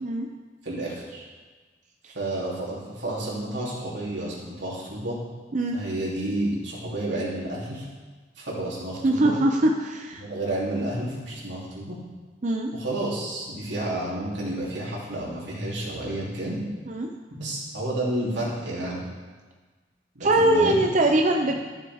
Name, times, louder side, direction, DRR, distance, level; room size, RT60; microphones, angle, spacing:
voice 1, 0.6-1.2 2.1-5.2 5.7-7.8 8.4-9.3 10.1-11.9 12.7-16.6 17.3-19.0 20.2-21.1 21.5-21.6, right 1 dB, 85° right, -6 dB, 3.1 m, -30 dB
voice 2, 9.0-10.2 12.4-12.7 16.9-17.1 20.2-21.5, right 1 dB, 45° right, 2 dB, 0.6 m, -22 dB
13.0 x 7.4 x 3.6 m, 1.4 s
head